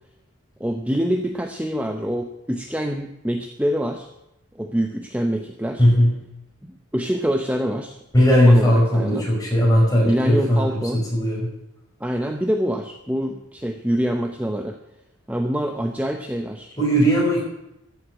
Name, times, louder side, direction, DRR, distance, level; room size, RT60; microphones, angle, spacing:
voice 1, 0.6-4.1 4.6-5.9 6.6-8.0 8.4-9.3 10.0-11.0 12.0-14.8 15.3-16.7, equal, 5° right, 5 dB, 0.7 m, -25 dB
voice 2, 5.8-6.1 8.1-11.5 16.8-17.4, equal, 20° left, -3 dB, 5.3 m, -17 dB
14.5 x 8.0 x 7.7 m, 0.86 s
head